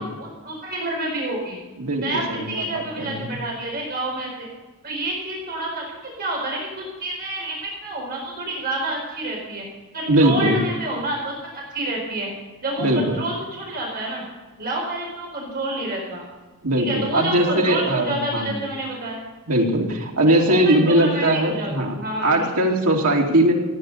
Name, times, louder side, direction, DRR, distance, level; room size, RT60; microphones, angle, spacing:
voice 1, 0.0-1.6 2.0-4.5 4.8-9.7 9.9-12.3 12.6-14.3 14.6-16.2 16.8-19.2 20.4-21.7 22.0-22.5, right 1 dB, 45° right, -2 dB, 4.6 m, -28 dB
voice 2, 1.8-3.4 10.1-10.6 12.8-13.2 16.6-18.6 19.5-21.9 22.2-23.5, right 1 dB, 90° right, -1 dB, 2.8 m, -20 dB
16.0 x 9.9 x 6.7 m, 1.2 s
head